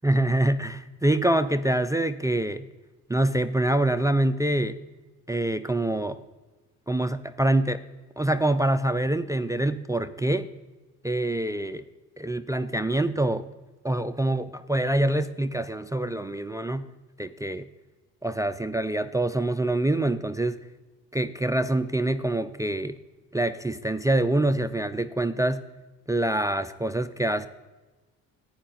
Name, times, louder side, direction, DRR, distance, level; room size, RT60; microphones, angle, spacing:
voice 1, 0.0-2.7 3.1-4.8 5.3-6.2 6.9-7.8 8.2-10.5 11.0-11.8 12.2-13.5 13.8-16.9 17.2-17.7 18.2-20.6 21.1-23.0 23.3-25.6 26.1-27.5, right 1 dB, 10° right, 12 dB, 0.3 m, -25 dB
11.0 x 9.3 x 3.8 m, 1.2 s
cardioid pair, 90°, 37 cm